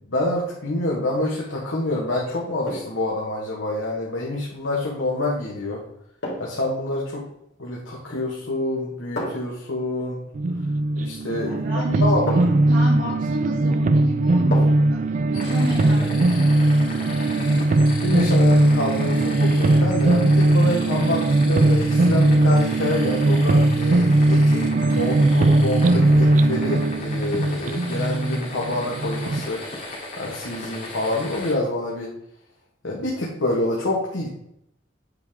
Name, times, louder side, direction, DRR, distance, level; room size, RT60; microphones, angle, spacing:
voice 1, 0.0-5.8 6.4-7.3 7.6-10.2 11.0-11.5 12.0-12.3 17.4-29.6 30.2-32.1 32.8-34.3, left 1 dB, 85° left, -4 dB, 1.6 m, -27 dB
sound 1, 1.1-1.4 2.6-3.1 5.2-5.4 6.2-6.7 8.0-8.4 9.1-9.6 11.3-11.4 12.3-12.7 14.5-14.9 15.3-15.4, left 1 dB, 60° left, 2.9 m, -32 dB
sound 2, 10.3-29.5, right 2 dB, 40° right, 0.3 m, -19 dB
voice 2, 11.4-17.0, right 1 dB, 75° right, -8 dB, 2.5 m, -32 dB
sound 3, 15.3-31.5, left 2 dB, 45° left, 2.8 m, -36 dB
8.5 x 5.0 x 3.7 m, 0.77 s
head